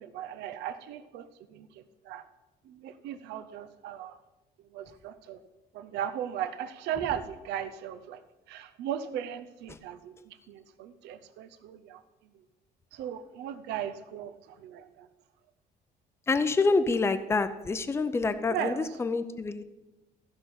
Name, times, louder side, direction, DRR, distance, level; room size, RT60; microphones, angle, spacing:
voice 1, 0.0-1.7 2.0-2.2 2.7-4.2 4.7-5.4 5.7-8.2 8.5-12.0 12.9-14.3 14.6-15.1 18.5-18.9, right 9 dB, 85° right, 10 dB, 0.7 m, -37 dB
voice 2, 16.3-19.6, left 3 dB, 15° left, 11 dB, 0.6 m, -27 dB
14.5 x 5.3 x 5.9 m, 1.0 s
cardioid pair, 110°, 17 cm